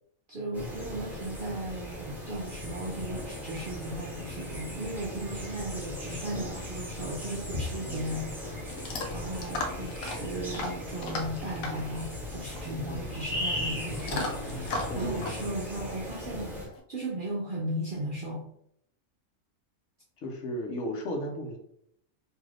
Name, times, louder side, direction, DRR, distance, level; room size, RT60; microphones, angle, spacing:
voice 1, 0.3-8.8 9.1-16.6 16.9-18.5, right 1 dB, 60° right, -2 dB, 0.5 m, -36 dB
sound 1, 0.5-16.7, left 1 dB, ahead, 0.8 m, -38 dB
sound 2, 1.8-15.2, left 2 dB, 35° left, 1.2 m, -48 dB
Chewing mastication / Dog, 7.7-16.8, left 2 dB, 90° left, 1.1 m, -38 dB
voice 2, 7.8-8.2 12.9-13.2 14.9-15.5 20.2-21.6, equal, 70° left, 2 dB, 1.0 m, -35 dB
2.8 x 2.5 x 3.2 m, 0.70 s
omnidirectional pair, 1.4 m